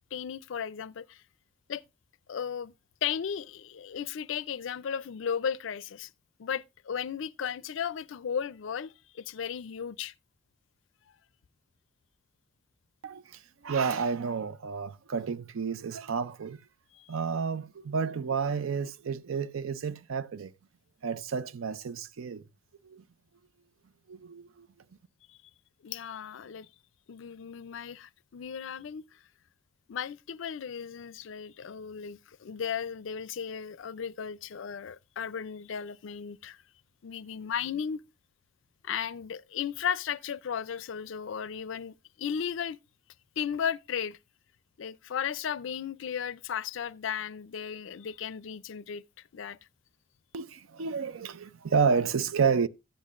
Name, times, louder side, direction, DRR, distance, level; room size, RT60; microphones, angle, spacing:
voice 1, 0.1-1.2 1.7-1.8 2.3-2.7 3.0-6.1 6.4-10.1 16.9-17.1 25.3-25.4 25.8-26.7 27.1-29.0 29.9-36.6 37.0-38.0 38.8-42.8 43.4-44.2 44.8-49.6, left 7 dB, 70° left, 0.4 m, -35 dB
voice 2, 13.0-16.6 17.1-20.5 21.0-22.4 22.9-23.0 24.1-24.7 50.3-52.7, right 5 dB, 85° right, 0.5 m, -30 dB
14.0 x 8.3 x 2.4 m
head